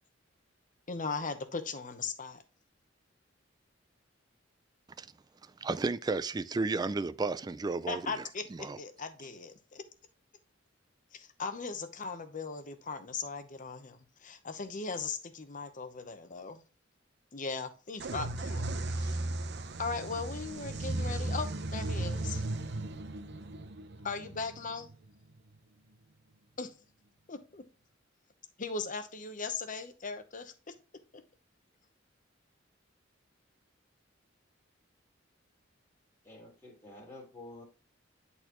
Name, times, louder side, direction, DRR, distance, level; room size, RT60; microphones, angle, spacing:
voice 1, 0.9-2.4 7.9-9.8 11.1-16.6 17.3-19.2 19.8-22.4 24.0-24.9 26.6-26.7 27.3-27.6 28.6-30.7, left 4 dB, 45° left, 0.9 m, -38 dB
voice 2, 5.6-8.2 8.6-8.8, right 3 dB, 20° right, 0.3 m, -32 dB
sound 1, 18.0-25.6, right 2 dB, 60° right, 0.7 m, -36 dB
voice 3, 36.2-37.6, left 2 dB, 15° left, 2.2 m, -49 dB
10.5 x 4.2 x 3.0 m
head